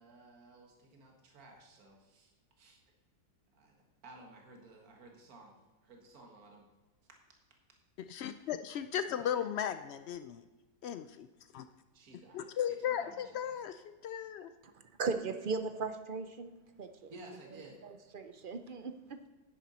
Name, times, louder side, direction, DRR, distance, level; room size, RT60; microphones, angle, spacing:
voice 1, 0.0-2.8 3.5-6.7 7.1-7.4 9.1-9.3 11.9-13.6 17.1-17.9, right 2 dB, 65° right, 2 dB, 2.0 m, -55 dB
voice 2, 8.1-10.4 10.8-11.3 11.5-11.7 12.3-14.5, left 9 dB, 90° left, 10 dB, 0.5 m, -36 dB
voice 3, 15.0-16.5 16.8-17.1 17.8-19.3, right 4 dB, 50° right, 8 dB, 0.6 m, -37 dB
10.0 x 9.9 x 4.2 m, 1.2 s
omnidirectional pair, 1.7 m